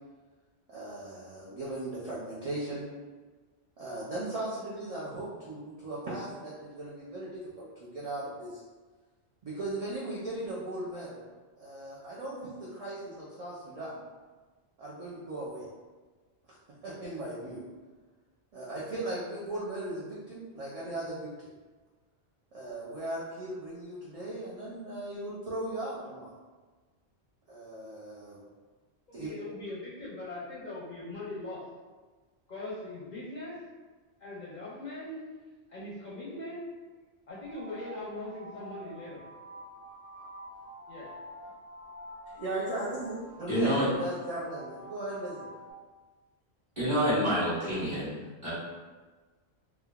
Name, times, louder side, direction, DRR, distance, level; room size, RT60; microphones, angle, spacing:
voice 1, 0.7-2.9 3.8-8.6 9.4-11.2 11.6-14.0 14.8-15.7 16.8-17.6 18.5-21.5 22.5-26.3 27.5-28.4 29.1-29.3 42.3-45.5, right 1 dB, 50° right, -7 dB, 0.5 m, -37 dB
voice 2, 29.1-31.6 32.5-33.5 34.2-35.2 35.7-36.6 37.3-39.2 40.9-41.1, left 2 dB, 55° left, -8 dB, 0.6 m, -40 dB
sound 1, 37.3-45.7, equal, 75° right, 1.8 m, -48 dB
voice 3, 43.5-43.9 46.8-48.1 48.4-48.5, equal, 30° right, -12 dB, 1.3 m, -27 dB
3.2 x 2.2 x 2.3 m, 1.3 s
omnidirectional pair, 1.1 m